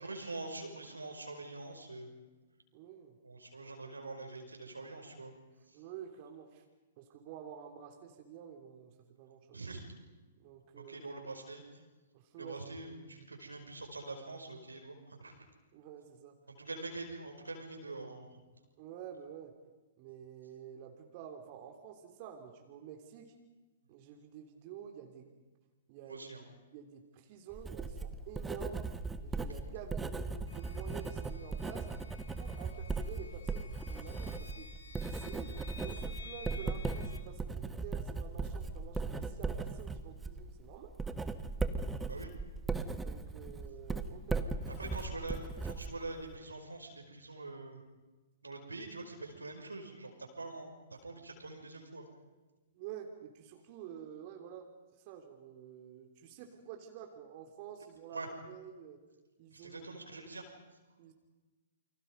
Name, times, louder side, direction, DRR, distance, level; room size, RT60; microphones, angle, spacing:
voice 1, 0.0-2.1 3.2-5.3 9.5-9.8 10.7-11.6 12.4-14.9 15.2-15.3 16.5-18.2 26.1-26.4 39.1-39.2 42.1-42.3 44.8-47.8 48.4-50.7 51.0-52.1 58.1-58.3 59.5-60.4, right 2 dB, 85° right, 3 dB, 5.7 m, -44 dB
voice 2, 2.7-3.2 5.7-6.6 7.0-9.6 10.4-11.0 12.1-12.6 15.7-16.3 18.8-19.5 20.0-23.3 23.9-25.5 25.9-26.3 26.7-28.9 29.2-31.9 32.3-34.7 35.1-40.9 43.0-44.6 52.7-54.7 55.0-59.0 59.4-59.8 61.0-61.1, right 9 dB, 40° right, 3 dB, 3.3 m, -49 dB
Writing, 27.5-46.3, right 3 dB, 10° right, 1.5 m, -38 dB
sound 1, 30.5-37.2, left 4 dB, 80° left, 3.7 m, -53 dB
29.0 x 26.0 x 5.4 m, 1.2 s
figure-of-eight pair, 115°, 0 cm